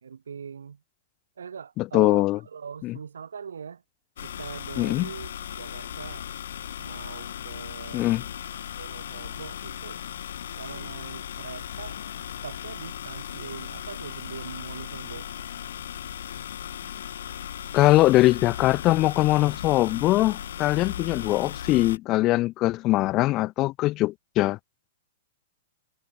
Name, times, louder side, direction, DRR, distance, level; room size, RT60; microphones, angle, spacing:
voice 1, 0.0-0.8 1.4-3.8 4.2-5.3 5.6-6.2 6.8-8.1 8.8-10.0 10.6-12.0 12.4-15.3, right 6 dB, 80° right, 5.6 m, -41 dB
voice 2, 1.8-2.4 2.8-3.0 4.8-5.1 7.9-8.2 17.7-24.6, left 18 dB, 35° left, 0.6 m, -22 dB
sound 1, 4.2-22.0, left 10 dB, 70° left, 1.5 m, -37 dB
hypercardioid pair, 115°, 0 cm